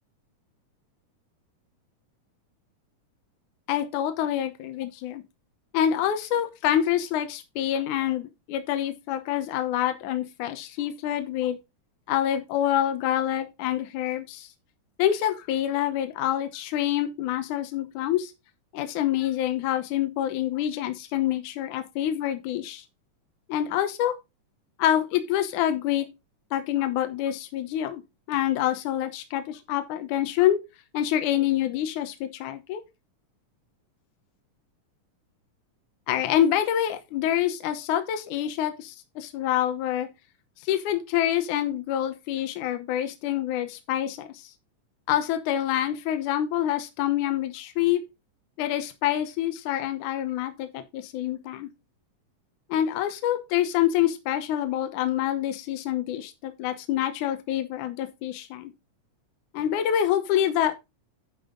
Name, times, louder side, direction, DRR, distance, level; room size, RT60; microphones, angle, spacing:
voice 1, 3.7-5.2 5.7-11.6 12.1-14.5 15.0-18.3 18.7-22.8 23.5-24.2 24.8-26.1 26.5-28.0 28.3-30.6 30.9-32.8 36.1-40.1 40.6-44.5 45.1-48.0 48.6-51.7 52.7-58.7 59.5-60.9, left 11 dB, 75° left, 2.3 m, -26 dB
11.0 x 5.5 x 3.8 m
omnidirectional pair, 3.7 m